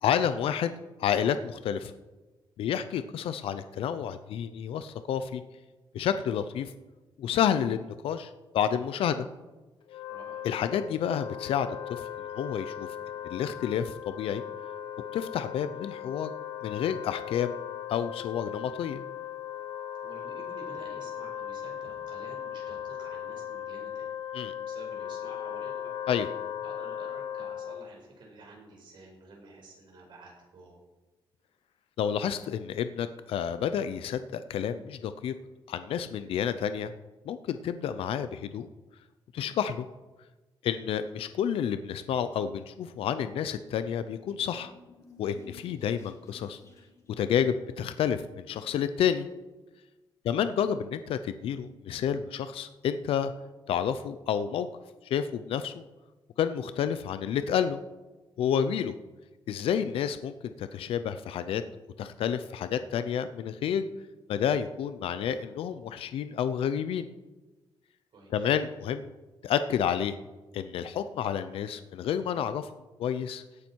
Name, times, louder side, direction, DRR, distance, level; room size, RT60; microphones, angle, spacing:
voice 1, 0.0-0.7 1.0-1.9 2.6-5.4 5.9-6.7 7.2-9.3 10.4-12.1 12.3-12.9 13.3-14.4 15.1-16.3 16.6-17.6 17.9-19.0 24.3-24.5 26.1-26.3 32.0-35.3 35.7-36.9 37.3-38.7 39.3-39.9 40.6-44.7 45.2-46.6 47.2-49.3 50.2-53.3 53.7-54.7 55.0-55.8 56.4-57.8 58.4-58.9 59.5-61.6 62.0-63.9 64.3-67.1 68.3-69.1 69.4-70.1 70.5-72.7 73.0-73.4, left 8 dB, 80° left, 11 dB, 0.6 m, -30 dB
voice 2, 2.7-3.1 10.1-10.4 20.0-24.1 24.7-25.9 26.6-30.8 50.3-50.4 68.1-68.5, right 2 dB, 55° right, -2 dB, 5.4 m, -50 dB
Wind instrument woodwind instrument, 9.8-28.0, left 10 dB, 65° left, 1.0 m, -38 dB
sound 1, 42.9-48.2, left 3 dB, 35° left, 2.7 m, -58 dB
17.0 x 9.8 x 4.6 m, 1.2 s
wide cardioid pair, 160°, 9 cm